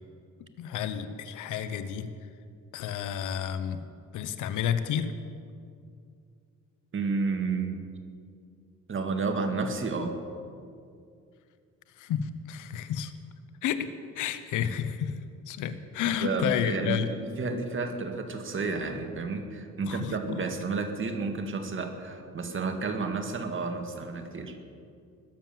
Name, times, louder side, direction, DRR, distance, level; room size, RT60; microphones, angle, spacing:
voice 1, 0.6-2.1 2.7-3.8 4.1-5.1 12.0-13.1 13.6-13.9 14.2-15.2 15.5-17.1 19.9-20.4, left 9 dB, 85° left, 11 dB, 0.9 m, -31 dB
voice 2, 6.9-7.8 8.9-10.2 16.0-24.6, right 4 dB, 40° right, 5 dB, 2.0 m, -31 dB
20.5 x 7.5 x 7.4 m, 2.4 s
cardioid pair, 90°, 30 cm